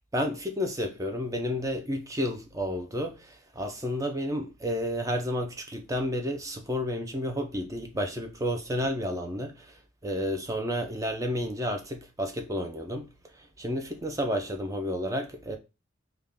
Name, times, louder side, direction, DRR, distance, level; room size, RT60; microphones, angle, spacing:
voice 1, 0.1-13.1 13.4-15.6, equal, 15° right, 0.4 m, -31 dB
3.6 x 2.3 x 3.4 m
head